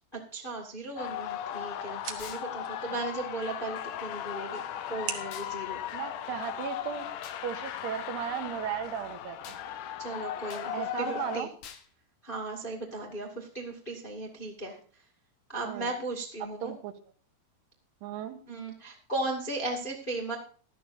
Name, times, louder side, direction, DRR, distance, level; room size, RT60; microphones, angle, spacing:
voice 1, 0.1-4.6 4.9-5.8 10.0-11.5 12.2-14.8 15.5-16.7 18.5-20.4, right 2 dB, 20° left, 1 dB, 1.2 m, -36 dB
sound 1, 0.8-6.8, right 8 dB, 55° right, 2.2 m, -46 dB
sound 2, 1.0-11.4, left 10 dB, 85° left, 1.8 m, -37 dB
sound 3, 2.2-2.5 5.3-5.5 7.2-7.4 9.4-9.6 10.5-10.7 11.6-11.9, left 8 dB, 60° left, 2.2 m, -46 dB
voice 2, 5.9-7.1 7.4-9.6 10.7-11.5 15.6-15.9 16.6-16.9 18.0-18.4, right 9 dB, 75° right, 8 dB, 3.0 m, -36 dB
16.0 x 12.5 x 2.7 m, 0.42 s
omnidirectional pair, 4.9 m